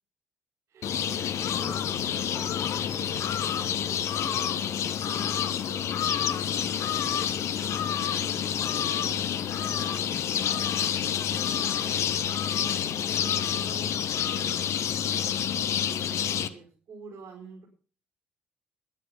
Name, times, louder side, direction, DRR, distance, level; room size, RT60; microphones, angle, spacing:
voice 1, 0.7-4.5 5.0-8.2 8.7-11.0 11.3-12.6 13.0-17.7, right 3 dB, 55° right, -3 dB, 4.8 m, -49 dB
sound 1, 0.8-16.5, left 9 dB, 55° left, 1.1 m, -28 dB
16.0 x 10.0 x 5.8 m, 0.42 s
hypercardioid pair, 50°, 6 cm